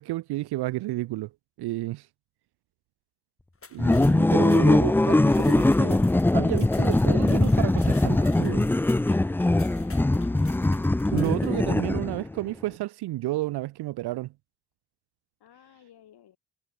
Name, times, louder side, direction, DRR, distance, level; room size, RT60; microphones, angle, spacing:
voice 1, 0.0-1.3 1.6-2.1 3.7-6.1 6.3-8.7 11.1-14.3, right 17 dB, 75° right, 0.6 m, -31 dB
sound 1, 3.5-11.6, left 4 dB, 35° left, 4.6 m, -50 dB
sound 2, 3.8-12.3, left 2 dB, 5° left, 0.4 m, -21 dB
voice 2, 9.5-10.7 11.4-12.2 15.4-16.4, left 10 dB, 75° left, 4.3 m, -54 dB
supercardioid pair, 55°, 39 cm